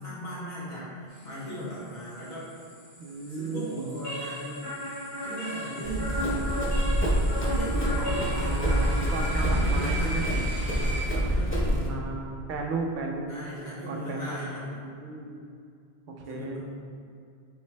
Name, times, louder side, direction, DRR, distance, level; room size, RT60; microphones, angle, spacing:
voice 1, 0.0-2.5 3.3-4.7 5.2-6.5 7.4-8.9 9.3-12.0 13.3-14.8 16.3-16.6, equal, 70° left, -9 dB, 1.5 m, -37 dB
sound 1, 1.1-11.0, right 1 dB, 85° left, 1.9 m, -42 dB
voice 2, 3.0-4.0 8.0-10.3 11.9-13.3 13.7-14.4 14.8-15.4 16.2-16.6, right 3 dB, 60° right, 1 dB, 0.6 m, -35 dB
sound 2, 4.0-9.9, left 1 dB, 50° left, 1.3 m, -35 dB
Run, 5.8-11.9, equal, 15° left, 0.4 m, -26 dB
3.8 x 3.6 x 3.2 m, 2.3 s
omnidirectional pair, 1.1 m